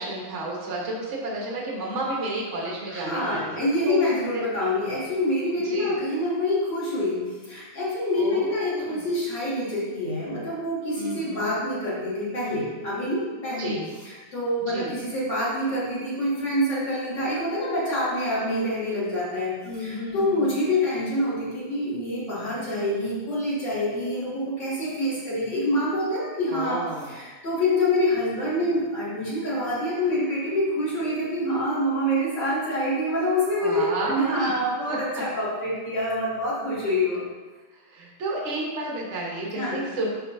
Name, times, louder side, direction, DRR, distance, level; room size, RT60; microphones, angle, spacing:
voice 1, 0.0-4.1 4.3-4.4 5.6-5.9 8.2-9.0 10.9-11.5 13.6-13.8 14.7-15.0 19.6-20.5 26.5-27.2 33.6-34.5 34.9-35.2 37.7-40.1, right 2 dB, 60° right, -3 dB, 0.7 m, -32 dB
voice 2, 2.9-37.2 39.6-39.8, left 1 dB, 40° left, -9 dB, 2.5 m, -26 dB
11.0 x 4.4 x 2.7 m, 1.3 s
omnidirectional pair, 3.4 m